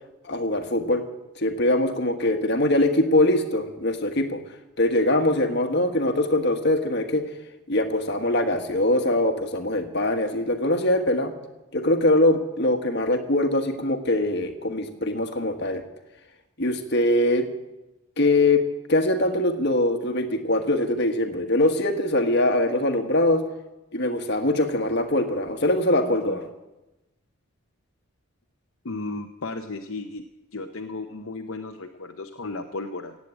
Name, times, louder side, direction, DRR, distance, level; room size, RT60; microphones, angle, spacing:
voice 1, 0.2-1.0 1.4-4.4 4.8-7.2 7.7-11.3 11.7-15.8 16.6-17.5 18.2-18.6 18.9-23.4 23.9-26.5, left 1 dB, 50° left, 5 dB, 1.5 m, -22 dB
voice 2, 28.8-30.2 30.5-33.2, left 3 dB, 65° left, 4 dB, 0.8 m, -34 dB
16.5 x 8.4 x 8.8 m, 1.0 s
head